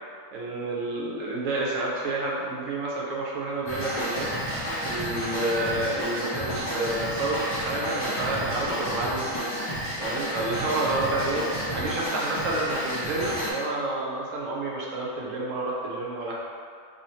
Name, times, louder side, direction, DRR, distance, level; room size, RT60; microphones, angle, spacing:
voice 1, 0.3-4.3 4.8-9.4 10.0-16.4, right 2 dB, 70° right, -4 dB, 1.0 m, -29 dB
sound 1, 3.7-13.5, equal, 30° left, 0.5 m, -31 dB
2.8 x 2.7 x 4.2 m, 2.1 s
omnidirectional pair, 1.5 m